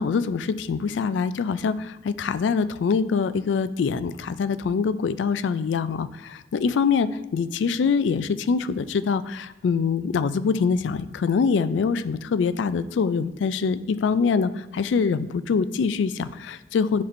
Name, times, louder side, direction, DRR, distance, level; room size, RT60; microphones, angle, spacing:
voice 1, 0.0-17.0, left 5 dB, 80° left, 14 dB, 0.3 m, -24 dB
10.5 x 4.3 x 2.6 m, 1.0 s
head